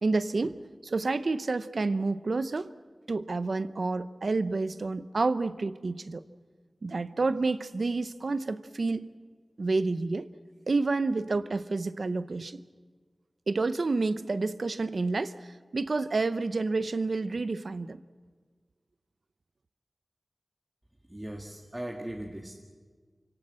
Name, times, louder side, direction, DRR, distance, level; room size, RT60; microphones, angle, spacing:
voice 1, 0.0-2.7 3.1-6.2 6.8-9.1 9.6-10.3 10.7-12.6 13.5-15.4 15.7-18.0, right 3 dB, 70° right, 13 dB, 0.7 m, -29 dB
voice 2, 21.1-22.5, right 1 dB, 15° right, 0 dB, 1.8 m, -38 dB
27.5 x 17.5 x 7.6 m, 1.5 s
wide cardioid pair, 80°, 0 cm